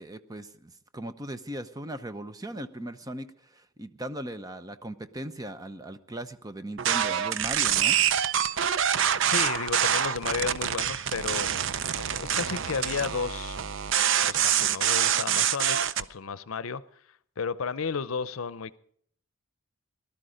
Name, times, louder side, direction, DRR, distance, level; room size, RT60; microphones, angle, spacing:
voice 1, 0.0-8.0, right 1 dB, 15° right, 0.7 m, -38 dB
sound 1, 6.8-16.0, right 9 dB, 60° right, 0.5 m, -26 dB
voice 2, 9.3-11.6 12.1-13.6 14.2-16.8 17.4-18.8, left 5 dB, 80° left, 0.6 m, -33 dB
18.5 x 12.5 x 5.1 m
head